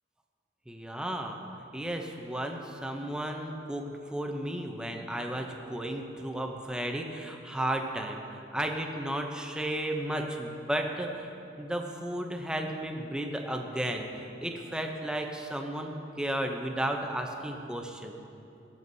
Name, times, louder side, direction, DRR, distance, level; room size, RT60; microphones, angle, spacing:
voice 1, 0.7-1.4 1.7-11.3 11.6-18.2, right 1 dB, 5° right, 3 dB, 0.6 m, -34 dB
17.0 x 6.9 x 2.7 m, 2.8 s
head